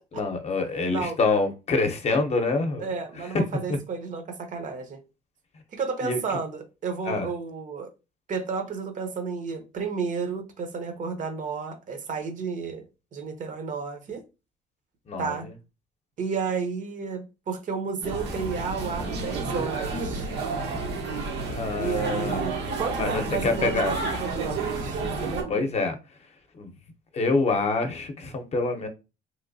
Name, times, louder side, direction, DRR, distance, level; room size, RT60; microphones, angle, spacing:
voice 1, 0.1-2.9 6.0-6.2 7.1-7.3 15.1-15.3 21.5-22.4 23.0-23.9 25.5-26.0 26.6-26.7 27.1-28.9, left 3 dB, 40° left, 0.7 m, -26 dB
voice 2, 2.8-5.0 5.7-7.9 8.3-12.8 13.1-14.2 15.2-15.5 16.2-20.3 21.8-25.7, right 5 dB, 50° right, 0.8 m, -32 dB
sound 1, 18.0-25.4, right 3 dB, 80° right, 1.1 m, -31 dB
3.1 x 3.0 x 2.6 m
cardioid pair, 110°, 17 cm